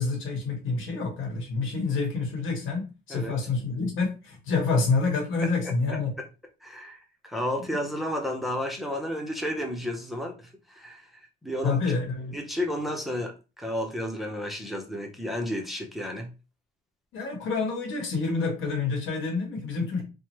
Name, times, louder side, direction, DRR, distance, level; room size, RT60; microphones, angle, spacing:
voice 1, 0.0-6.1 11.6-12.4 17.1-20.0, left 4 dB, 80° left, 1.2 m, -28 dB
voice 2, 5.6-6.3 6.6-11.8 12.3-16.3, left 1 dB, ahead, 0.7 m, -32 dB
3.1 x 2.2 x 3.0 m
cardioid pair, 90°, 20 cm